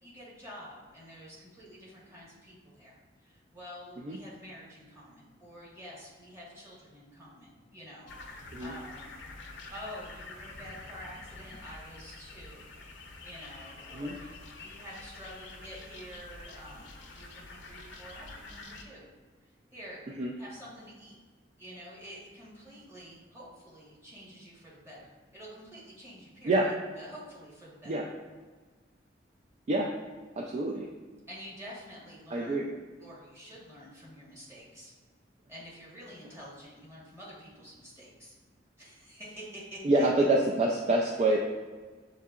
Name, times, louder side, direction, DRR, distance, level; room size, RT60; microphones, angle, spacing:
voice 1, 0.0-9.2 9.7-12.7 13.2-19.1 19.7-20.0 20.4-21.2 21.6-26.6 27.0-28.0 31.3-32.6 33.0-34.9 35.5-38.4 38.8-40.1, equal, 15° right, -7 dB, 1.2 m, -48 dB
sound 1, 8.1-18.8, left 3 dB, 70° left, 0.5 m, -47 dB
voice 2, 30.4-30.9 32.3-32.6 39.8-41.4, right 2 dB, 35° right, -1 dB, 0.3 m, -26 dB
6.6 x 2.8 x 2.4 m, 1.4 s
head